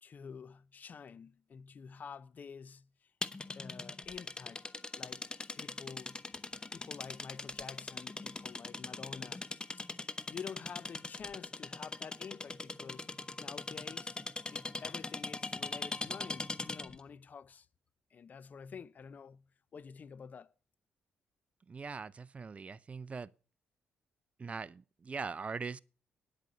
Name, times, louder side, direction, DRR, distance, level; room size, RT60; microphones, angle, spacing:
voice 1, 0.0-3.1 3.5-4.6 4.9-5.3 5.6-6.3 6.7-9.5 10.1-14.2 14.5-17.7 18.1-20.5, left 6 dB, 50° left, 0.6 m, -49 dB
sound 1, 3.2-17.0, left 3 dB, 25° left, 0.9 m, -41 dB
voice 2, 21.7-23.3 24.4-25.8, right 5 dB, 35° right, 0.6 m, -41 dB
9.8 x 8.4 x 6.4 m
supercardioid pair, 60°, 4 cm